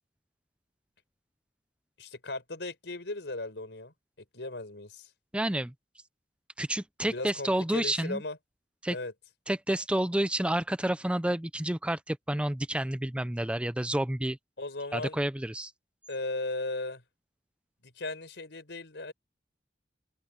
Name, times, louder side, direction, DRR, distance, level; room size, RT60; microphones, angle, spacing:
voice 1, 2.0-3.9 4.3-5.1 7.1-8.4 8.9-9.1 14.6-15.2 16.1-17.0 17.8-19.1, left 2 dB, 80° left, 4.8 m, -37 dB
voice 2, 5.3-5.7 6.6-8.2 8.8-9.0 9.5-14.4 14.9-15.7, right 1 dB, 5° right, 0.5 m, -29 dB
head